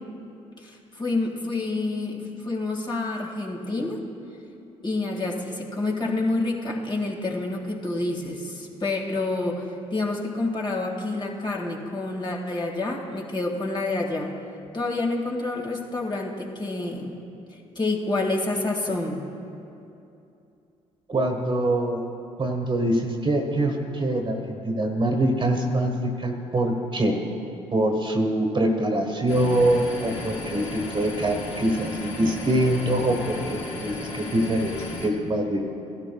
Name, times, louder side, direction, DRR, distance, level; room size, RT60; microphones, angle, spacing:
voice 1, 0.6-4.0 4.8-9.7 9.9-14.3 14.7-17.1 17.8-19.2, left 2 dB, 30° left, -2 dB, 2.0 m, -28 dB
voice 2, 21.1-22.1 22.4-27.2 27.7-35.6, right 1 dB, 35° right, 3 dB, 1.4 m, -24 dB
sound 1, 29.3-35.1, left 2 dB, 50° left, 2.6 m, -35 dB
16.0 x 12.0 x 2.3 m, 2.7 s
hypercardioid pair, 55°, 15 cm